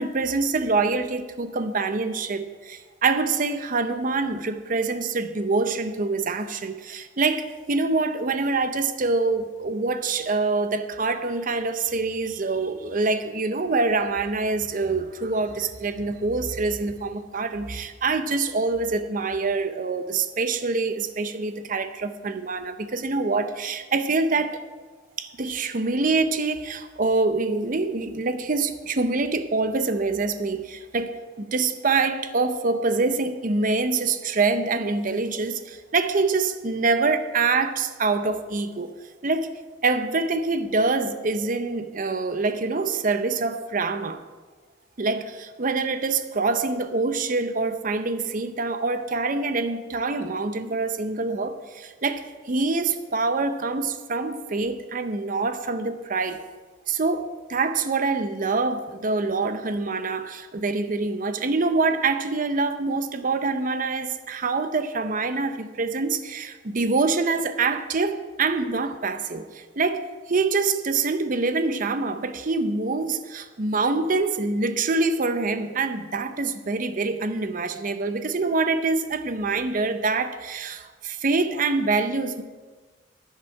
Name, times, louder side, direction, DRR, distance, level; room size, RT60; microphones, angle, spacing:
voice 1, 0.0-24.6 25.2-38.9 39.2-39.5 39.8-44.2 45.0-56.4 56.9-70.0 70.3-82.4, right 3 dB, 45° right, 0.7 m, -25 dB
10.5 x 10.5 x 4.8 m
head